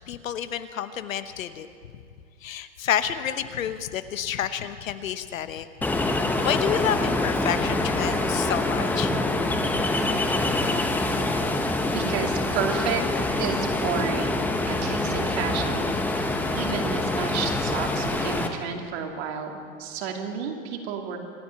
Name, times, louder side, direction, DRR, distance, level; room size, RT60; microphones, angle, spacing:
voice 1, 0.1-1.7 2.4-5.7 6.4-9.1, left 10 dB, 80° left, 11 dB, 1.1 m, -29 dB
Ocean, 5.8-18.5, left 2 dB, 5° left, 0.8 m, -25 dB
voice 2, 11.9-13.0 13.4-14.4 14.7-21.2, right 6 dB, 50° right, 3 dB, 2.4 m, -31 dB
26.0 x 9.6 x 5.8 m, 2.3 s
hypercardioid pair, 130°, 40 cm